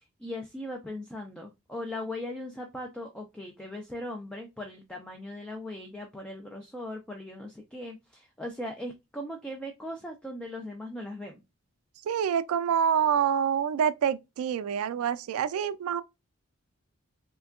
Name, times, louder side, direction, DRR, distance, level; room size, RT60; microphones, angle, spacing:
voice 1, 0.2-11.4, left 1 dB, 5° left, 0.3 m, -39 dB
voice 2, 12.1-16.0, right 8 dB, 90° right, 0.3 m, -26 dB
3.4 x 2.2 x 2.3 m
head